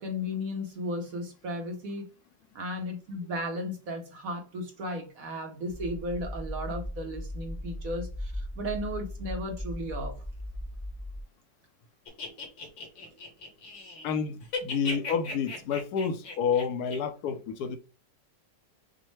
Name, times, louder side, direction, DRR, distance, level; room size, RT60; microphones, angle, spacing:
voice 1, 0.0-2.1 2.5-10.2, left 1 dB, 55° right, 1.1 m, -35 dB
sound 1, 5.7-11.2, left 1 dB, 25° left, 0.9 m, -38 dB
sound 2, 12.1-14.2 14.4-17.0, left 3 dB, 85° left, 2.0 m, -37 dB
voice 2, 14.0-17.8, left 6 dB, 70° left, 1.0 m, -29 dB
6.1 x 2.1 x 3.2 m
omnidirectional pair, 2.0 m